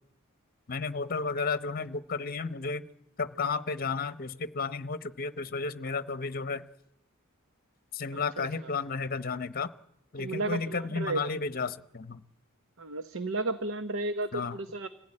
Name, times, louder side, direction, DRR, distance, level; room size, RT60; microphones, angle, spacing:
voice 1, 0.7-2.9 3.2-6.6 7.9-9.7 10.1-12.2 14.3-14.6, left 4 dB, 45° left, 15 dB, 0.9 m, -33 dB
voice 2, 8.1-8.8 10.2-11.2 12.8-14.9, right 2 dB, 60° right, 12 dB, 0.9 m, -33 dB
25.0 x 16.5 x 9.8 m, 0.84 s
head